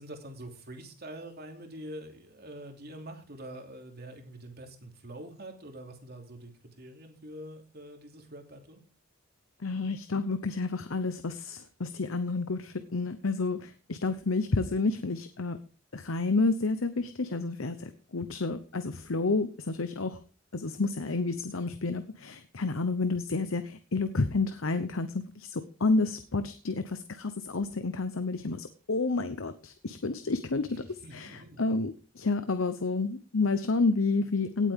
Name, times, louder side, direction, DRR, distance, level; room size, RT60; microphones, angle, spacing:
voice 1, 0.0-8.8 30.7-31.7, right 1 dB, 50° right, 3 dB, 2.9 m, -45 dB
voice 2, 9.6-15.6 15.9-20.2 20.5-30.8 31.1-31.3 31.6-34.7, left 3 dB, 85° left, 10 dB, 0.9 m, -30 dB
18.0 x 8.5 x 3.7 m, 0.38 s
head